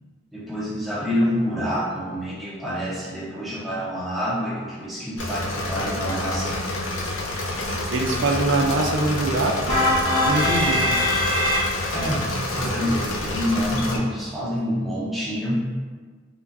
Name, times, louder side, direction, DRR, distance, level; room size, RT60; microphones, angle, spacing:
voice 1, 0.3-6.6 11.9-15.6, equal, ahead, -8 dB, 0.5 m, -27 dB
Engine / Mechanisms, 5.2-14.0, left 1 dB, 85° left, 0.6 m, -28 dB
voice 2, 7.9-9.8 10.2-10.9, right 2 dB, 75° right, 2 dB, 0.5 m, -23 dB
sound 1, 9.7-12.1, left 1 dB, 15° left, 1.1 m, -22 dB
4.7 x 2.2 x 2.6 m, 1.5 s
head